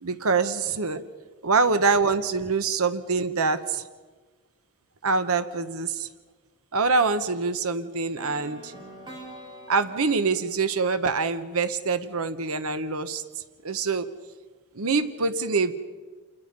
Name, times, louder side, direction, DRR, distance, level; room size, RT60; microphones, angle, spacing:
voice 1, 0.0-1.0 1.4-3.8 5.0-6.1 6.7-8.7 9.7-13.2 13.6-14.1 14.7-15.7, right 4 dB, 75° right, 11 dB, 1.0 m, -25 dB
sound 1, 8.2-12.1, equal, 20° right, 3.6 m, -46 dB
29.0 x 20.5 x 5.3 m, 1.4 s
head